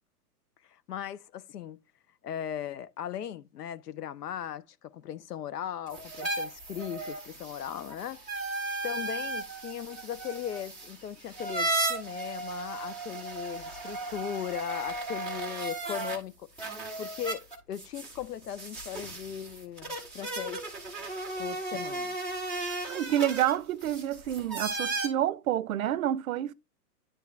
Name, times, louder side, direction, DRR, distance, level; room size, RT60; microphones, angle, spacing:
voice 1, 0.7-1.8 2.2-8.2 8.8-16.5 17.0-20.7 21.4-22.2, left 10 dB, 85° left, 0.7 m, -38 dB
sound 1, 5.9-16.2 16.6-25.1, right 2 dB, ahead, 0.3 m, -35 dB
voice 2, 22.9-26.5, right 11 dB, 65° right, 0.5 m, -28 dB
9.9 x 3.3 x 3.1 m
hypercardioid pair, 125°, 46 cm